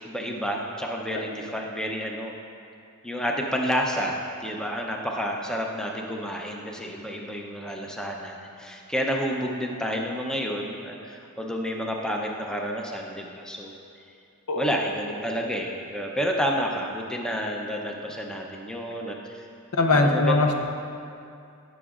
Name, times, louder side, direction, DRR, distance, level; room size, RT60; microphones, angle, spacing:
voice 1, 0.0-2.3 3.0-13.8 14.6-19.5 19.9-20.4, equal, 5° left, 0 dB, 0.6 m, -30 dB
voice 2, 19.7-20.6, left 2 dB, 80° left, 4 dB, 0.7 m, -21 dB
17.5 x 6.1 x 2.4 m, 2.5 s
head